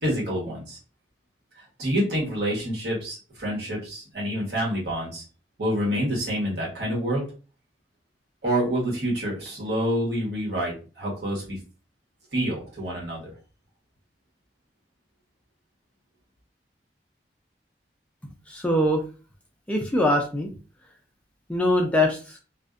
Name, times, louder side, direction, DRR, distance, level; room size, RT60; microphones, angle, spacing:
voice 1, 0.0-0.8 1.8-5.2 5.6-7.2 8.4-11.6 12.3-13.3, equal, 70° right, -3 dB, 1.1 m, -27 dB
voice 2, 18.5-19.0 19.7-20.6 21.5-22.4, left 1 dB, 10° left, 0 dB, 0.3 m, -23 dB
2.5 x 2.1 x 2.4 m, 0.35 s
head